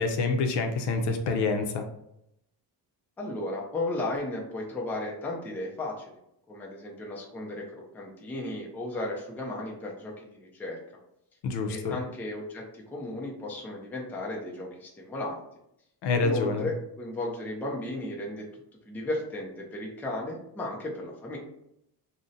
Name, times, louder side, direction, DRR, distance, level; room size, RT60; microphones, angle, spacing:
voice 1, 0.0-1.8 11.4-12.0 16.0-16.7, left 3 dB, 70° left, 5 dB, 0.6 m, -27 dB
voice 2, 3.2-6.1 6.5-10.8 11.7-15.4 16.2-18.5 18.9-21.4, left 1 dB, 5° left, -2 dB, 0.3 m, -35 dB
2.5 x 2.1 x 3.8 m, 0.80 s
cardioid pair, 155°, 43 cm